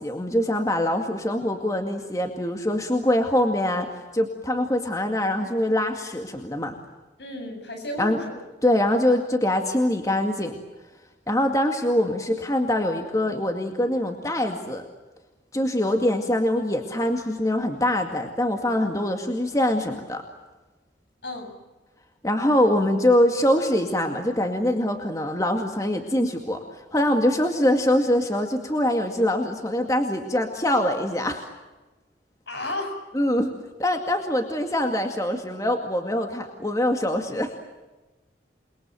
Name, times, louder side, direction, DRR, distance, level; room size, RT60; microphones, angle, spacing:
voice 1, 0.0-3.9 4.1-6.8 8.0-8.2 8.6-10.6 11.3-14.9 15.5-20.2 22.2-31.5 33.1-33.5 33.8-37.5, left 1 dB, 20° left, 4 dB, 2.1 m, -23 dB
voice 2, 7.2-8.4 21.2-21.6 32.5-33.0, left 1 dB, 70° left, 5 dB, 8.0 m, -32 dB
29.5 x 22.5 x 7.7 m, 1.2 s
head